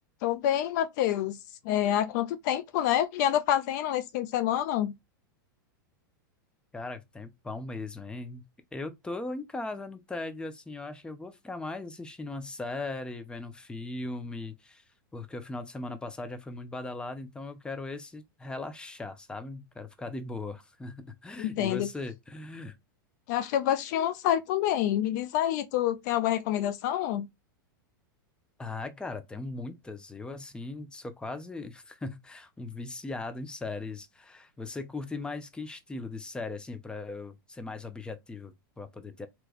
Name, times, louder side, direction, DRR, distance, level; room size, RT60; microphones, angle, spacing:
voice 1, 0.2-1.4 1.6-4.9 21.4-21.9 23.3-27.3, left 11 dB, 55° left, 0.4 m, -27 dB
voice 2, 6.7-8.5 8.7-14.8 15.1-22.8 28.6-39.3, left 2 dB, 10° left, 0.6 m, -38 dB
3.4 x 3.0 x 2.3 m
hypercardioid pair, 110°, 11 cm